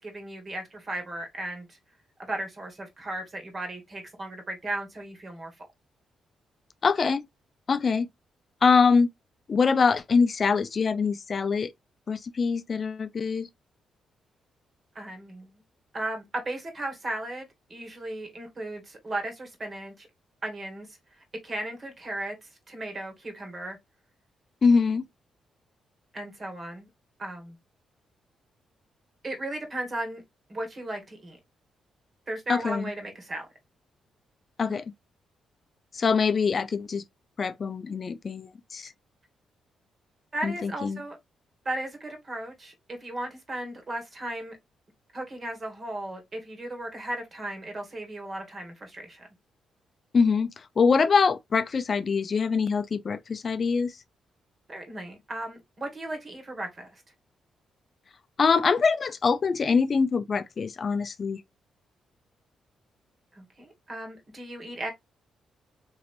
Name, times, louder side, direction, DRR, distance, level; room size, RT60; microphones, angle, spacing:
voice 1, 0.0-1.8 2.3-5.7 14.9-15.6 15.9-20.1 20.4-21.0 21.4-23.8 26.1-26.9 27.2-27.6 29.2-30.2 30.5-31.4 32.3-33.5 40.3-41.2 41.6-44.6 45.1-49.3 54.7-57.0 63.3-64.9, right 1 dB, 40° right, 1.6 m, -36 dB
voice 2, 6.8-7.3 7.7-8.1 8.6-9.1 9.5-11.7 12.1-13.5 24.6-25.1 32.5-32.9 34.6-34.9 35.9-37.0 37.4-38.9 40.4-41.0 50.1-54.0 58.4-61.4, left 5 dB, 45° left, 0.4 m, -24 dB
3.1 x 2.8 x 2.5 m
cardioid pair, 85°, 0 cm